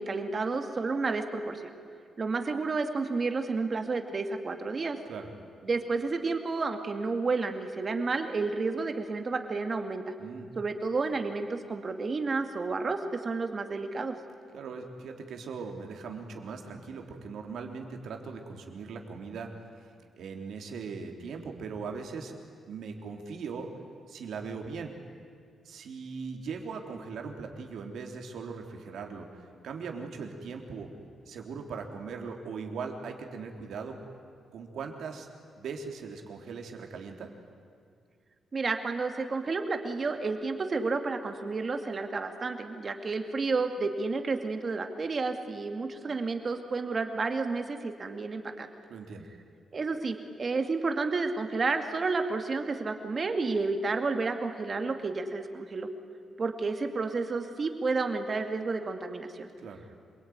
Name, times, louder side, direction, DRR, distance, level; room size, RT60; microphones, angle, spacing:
voice 1, 0.0-1.7 2.2-5.0 5.6-10.0 10.6-14.1 38.5-48.7 49.7-55.9 56.4-59.5, right 4 dB, 30° right, 6 dB, 2.2 m, -31 dB
voice 2, 14.5-19.5 20.1-22.3 22.7-23.7 24.1-24.9 25.6-30.9 31.3-34.0 34.5-35.3 35.6-37.3 48.9-49.3 59.6-59.8, right 5 dB, 70° right, 3 dB, 3.4 m, -39 dB
27.0 x 22.5 x 9.5 m, 2.3 s
wide cardioid pair, 165°, 0 cm